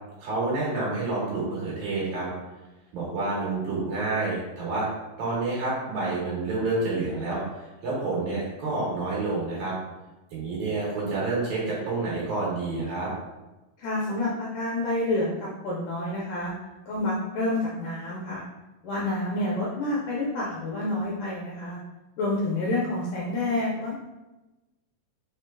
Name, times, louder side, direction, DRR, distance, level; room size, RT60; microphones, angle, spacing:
voice 1, 0.2-2.3 2.9-4.9 5.2-9.7 10.3-13.1, right 3 dB, 65° right, -5 dB, 2.5 m, -28 dB
voice 2, 13.8-16.5 16.9-18.4 18.8-21.8 22.2-23.9, left 2 dB, 80° left, -4 dB, 1.8 m, -28 dB
4.9 x 4.4 x 2.2 m, 1.1 s
omnidirectional pair, 4.1 m